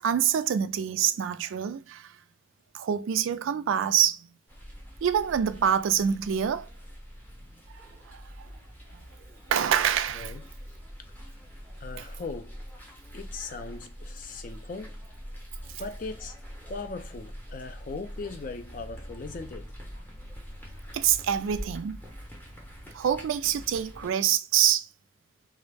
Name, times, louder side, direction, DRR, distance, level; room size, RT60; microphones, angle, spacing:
voice 1, 0.0-2.1 2.7-4.3 5.0-6.7 8.1-8.5 9.5-10.3 11.9-12.0 20.9-22.0 22.9-24.9, right 9 dB, 90° right, 0.3 m, -26 dB
sound 1, 4.5-24.1, equal, 10° left, 0.7 m, -44 dB
voice 2, 10.1-10.4 11.0-11.1 11.8-12.6 13.1-15.0 15.8-16.4 16.7-20.0, left 3 dB, 45° left, 0.4 m, -39 dB
2.3 x 2.0 x 3.3 m
head